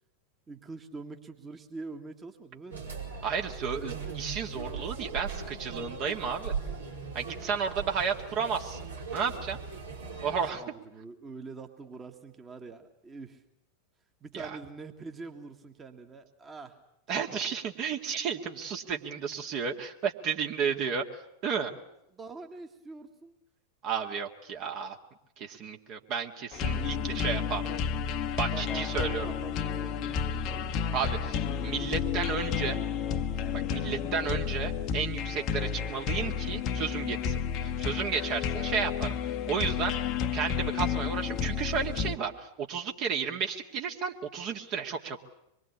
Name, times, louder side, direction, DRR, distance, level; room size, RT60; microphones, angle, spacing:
voice 1, 0.5-2.8 3.7-4.2 10.5-13.4 14.2-16.8 17.2-17.4 22.1-23.4 27.7-27.9 28.5-30.8, right 4 dB, 20° right, 5 dB, 1.9 m, -44 dB
sound 1, 2.7-10.5, right 5 dB, 75° right, 4.8 m, -39 dB
voice 2, 3.2-6.5 7.1-8.8 9.1-9.6 10.2-10.6 14.3-14.5 17.1-21.0 21.4-21.7 23.8-25.0 25.4-27.7 28.4-29.3 30.9-32.8 33.7-39.2 39.5-40.0 40.3-45.2, right 6 dB, 40° right, 3 dB, 2.1 m, -32 dB
sound 2, 26.5-42.2, left 7 dB, 40° left, 1.1 m, -31 dB
25.5 x 22.5 x 8.6 m, 0.80 s
figure-of-eight pair, 90°, 0 cm